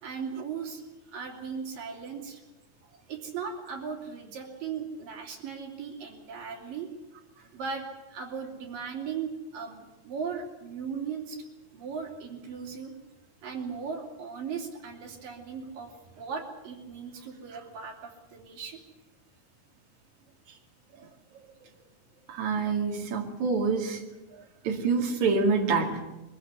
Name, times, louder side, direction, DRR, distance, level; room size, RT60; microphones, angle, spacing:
voice 1, 0.0-2.4 3.1-6.9 7.5-7.8 8.1-11.4 11.7-12.9 13.4-18.8, right 6 dB, 75° right, 0 dB, 4.9 m, -37 dB
voice 2, 22.3-24.0 24.6-26.0, right 4 dB, 60° right, 2 dB, 3.7 m, -26 dB
23.0 x 15.0 x 9.6 m, 1.1 s
omnidirectional pair, 3.9 m